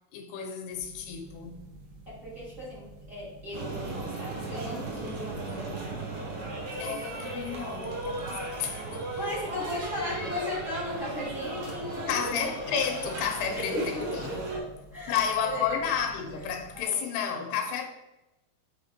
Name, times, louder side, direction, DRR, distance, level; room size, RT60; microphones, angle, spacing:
voice 1, 0.1-1.7 6.8-9.0 12.1-14.3 15.1-17.8, left 7 dB, 90° left, 3.0 m, -31 dB
sound 1, 0.7-16.8, right 2 dB, 75° right, 3.0 m, -50 dB
voice 2, 2.1-6.0 6.7-6.8 9.1-12.2 13.5-14.6 14.9-15.1 15.4-15.7 16.7-17.0, left 1 dB, 25° right, 2.1 m, -36 dB
sound 2, 3.5-14.6, right 2 dB, 55° right, 1.8 m, -36 dB
8.5 x 4.8 x 4.3 m
omnidirectional pair, 4.6 m